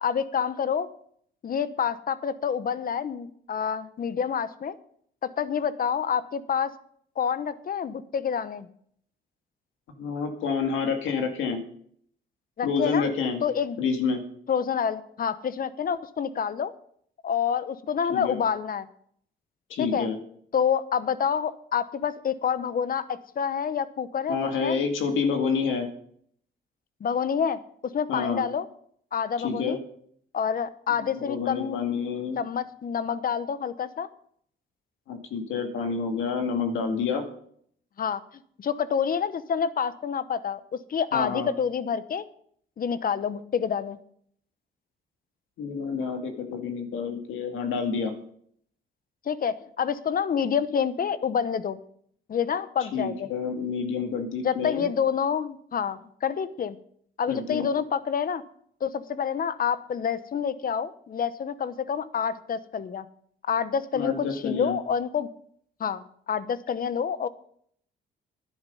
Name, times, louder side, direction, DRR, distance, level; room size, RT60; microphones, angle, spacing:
voice 1, 0.0-0.9 1.4-4.7 5.2-6.7 7.2-8.7 12.6-13.0 13.4-13.8 14.5-16.7 17.2-18.9 19.8-20.1 20.5-24.4 24.6-24.8 27.0-28.7 29.1-29.8 30.3-31.9 32.4-34.1 38.0-38.2 38.6-42.2 42.8-44.0 49.3-51.8 52.3-53.3 54.4-56.8 57.2-58.4 58.8-63.1 63.5-65.3 65.8-67.3, left 7 dB, 45° left, 15 dB, 1.0 m, -28 dB
voice 2, 10.0-11.6 12.6-13.4 13.8-14.2 18.1-18.4 19.7-20.2 24.3-25.9 28.1-28.4 29.4-29.8 31.0-32.4 35.1-37.2 41.1-41.5 45.6-48.1 52.8-54.9 57.3-57.7 63.9-64.8, left 5 dB, 85° left, 5 dB, 2.2 m, -28 dB
12.0 x 11.0 x 5.5 m, 0.64 s
cardioid pair, 90°, 20 cm